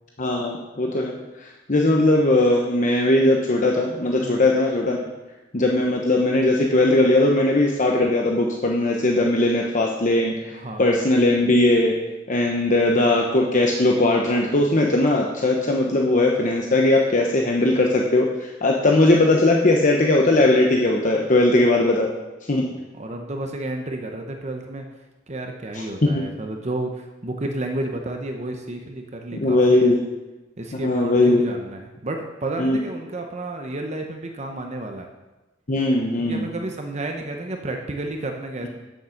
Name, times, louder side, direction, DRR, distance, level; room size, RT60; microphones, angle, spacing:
voice 1, 0.2-5.0 5.5-11.9 12.3-22.1 22.5-22.7 25.7-26.3 29.3-30.0 30.7-31.4 32.6-32.8 35.7-36.5, left 2 dB, 45° left, 0 dB, 1.0 m, -19 dB
voice 2, 10.5-10.9 22.7-24.9 25.3-29.9 30.6-35.1 36.2-38.7, right 2 dB, 35° right, 3 dB, 0.9 m, -31 dB
8.6 x 7.4 x 6.4 m, 1.1 s
head